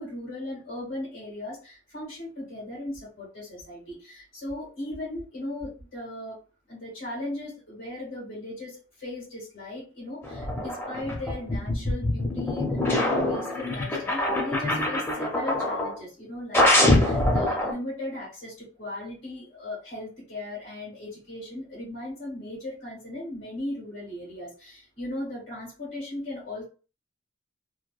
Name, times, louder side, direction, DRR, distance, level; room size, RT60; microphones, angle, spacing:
voice 1, 0.0-6.4 6.7-26.6, left 1 dB, 70° left, -7 dB, 1.5 m, -37 dB
sound 1, 10.2-16.0 16.5-17.7, left 1 dB, 10° left, 0.5 m, -24 dB
2.9 x 2.1 x 2.3 m, 0.36 s
head